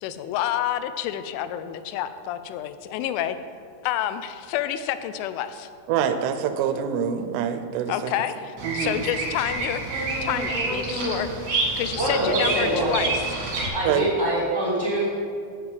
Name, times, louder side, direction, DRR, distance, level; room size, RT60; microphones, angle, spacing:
voice 1, 0.0-3.4 3.8-5.7 7.9-13.4, left 11 dB, 85° left, 11 dB, 3.0 m, -29 dB
voice 2, 5.9-8.1 8.6-9.0 13.9-14.1, right 8 dB, 85° right, 9 dB, 3.2 m, -25 dB
Bird vocalization bird call bird song, 8.6-13.7, right 3 dB, 45° right, 2.2 m, -28 dB
voice 3, 12.0-12.9 13.7-15.1, right 1 dB, 10° left, -8 dB, 1.0 m, -24 dB
8.3 x 7.8 x 7.4 m, 2.3 s
omnidirectional pair, 5.5 m